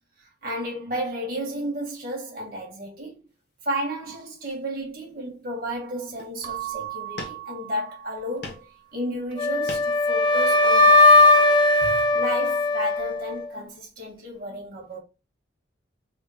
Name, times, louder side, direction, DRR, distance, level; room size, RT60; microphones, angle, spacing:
voice 1, 0.4-3.2 3.6-8.6 8.9-11.1 11.8-15.0, equal, 50° right, 1.4 m, -32 dB
sound 1, 3.7-3.9 4.4-5.1 5.6-5.7 6.1-6.5 7.2-7.8 8.2-8.8 9.1-10.1, left 2 dB, 60° left, 1.0 m, -41 dB
Keyboard (musical) / Bell, 6.4-8.9, right 14 dB, 70° right, 0.7 m, -37 dB
Wind instrument woodwind instrument, 9.4-13.5, left 2 dB, 25° left, 0.4 m, -18 dB
3.7 x 2.2 x 4.0 m
head